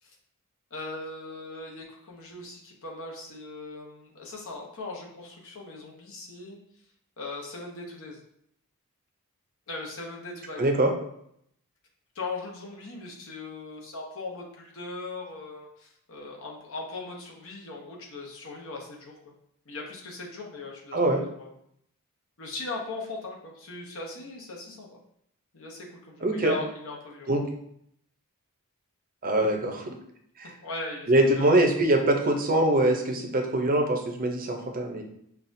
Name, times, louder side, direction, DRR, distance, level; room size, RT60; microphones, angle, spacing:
voice 1, 0.7-6.6 7.2-8.2 9.7-10.6 12.1-19.3 19.6-21.5 22.4-24.9 25.5-27.3 30.6-31.7, left 2 dB, 65° left, -1 dB, 0.9 m, -39 dB
voice 2, 10.6-10.9 20.9-21.2 26.2-26.6 27.3-27.4 29.2-29.9 30.4-30.5 31.1-35.0, right 1 dB, 40° right, 3 dB, 0.6 m, -23 dB
5.6 x 2.4 x 2.6 m, 0.71 s
head